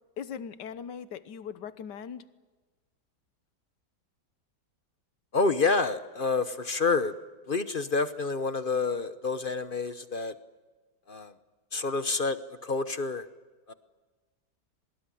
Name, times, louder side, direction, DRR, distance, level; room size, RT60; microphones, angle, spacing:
voice 1, 0.2-2.3, left 7 dB, 80° left, 14 dB, 1.7 m, -39 dB
voice 2, 5.3-7.1 7.5-10.3 11.1-11.3 11.7-13.3 13.7-13.8, left 4 dB, 40° left, 12 dB, 0.8 m, -28 dB
23.5 x 21.0 x 9.9 m, 1.3 s
omnidirectional pair, 1.9 m